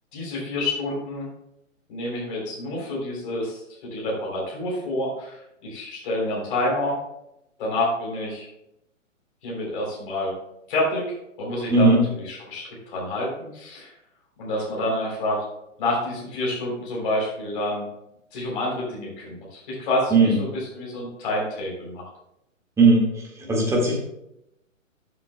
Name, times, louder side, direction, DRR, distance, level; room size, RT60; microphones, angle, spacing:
voice 1, 0.1-1.3 1.9-6.9 7.6-8.5 9.4-10.3 10.7-11.1 11.4-13.9 14.4-15.4 15.8-17.8 18.3-22.0, left 1 dB, 40° left, -4 dB, 3.6 m, -28 dB
voice 2, 22.8-23.1 23.5-24.0, right 3 dB, 5° right, -2 dB, 1.8 m, -17 dB
14.0 x 7.7 x 2.2 m, 0.83 s
figure-of-eight pair, 125°, 39 cm